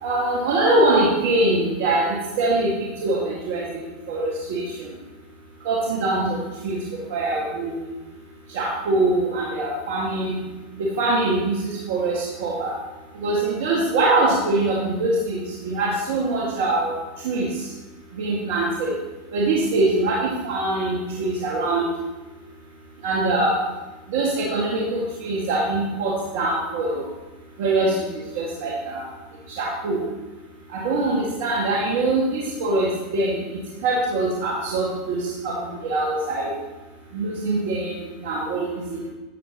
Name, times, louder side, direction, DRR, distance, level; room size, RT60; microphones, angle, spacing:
voice 1, 0.0-3.8 4.1-4.6 5.7-6.4 6.6-6.8 7.1-7.8 8.5-10.4 11.0-12.7 13.2-16.9 17.2-17.5 18.2-18.9 19.3-21.8 23.0-23.6 24.1-27.0 27.6-28.1 28.4-29.1 29.6-30.0 30.7-33.3 33.8-35.5 35.8-36.5 37.1-37.9 38.2-38.7, right 2 dB, 70° right, -4 dB, 1.9 m, -23 dB
12.5 x 7.6 x 3.0 m, 1.1 s
hypercardioid pair, 100°, 0 cm